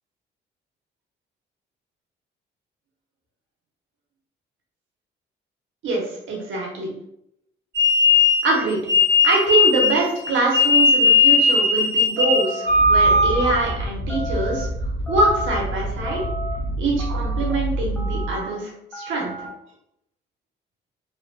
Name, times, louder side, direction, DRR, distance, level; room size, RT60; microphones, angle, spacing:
voice 1, 5.8-6.9 8.4-8.8 9.2-14.7 15.1-16.2 16.8-19.5, right 2 dB, 75° right, -1 dB, 1.0 m, -24 dB
sound 1, 7.7-13.7, left 4 dB, 55° right, 0.8 m, -17 dB
sound 2, 12.2-12.7 13.1-13.7 14.1-14.6 15.1-15.6 16.0-16.6 17.0-17.5 18.0-18.5 18.9-19.5, right 1 dB, 10° left, 0.7 m, -34 dB
sound 3, 12.7-18.4, right 1 dB, 60° left, 0.5 m, -28 dB
2.9 x 2.5 x 2.3 m, 0.78 s
cardioid pair, 90°, 20 cm